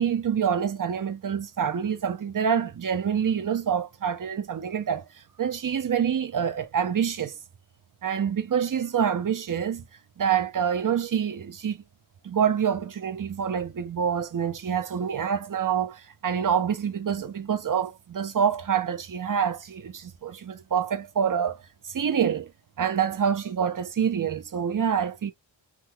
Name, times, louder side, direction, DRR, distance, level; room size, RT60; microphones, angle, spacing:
voice 1, 0.0-5.1 5.4-7.4 8.0-9.8 10.2-11.8 12.2-21.6 21.8-22.5 22.8-25.3, right 8 dB, 45° right, 0.5 m, -26 dB
3.5 x 2.1 x 2.9 m
wide cardioid pair, 150°, 48 cm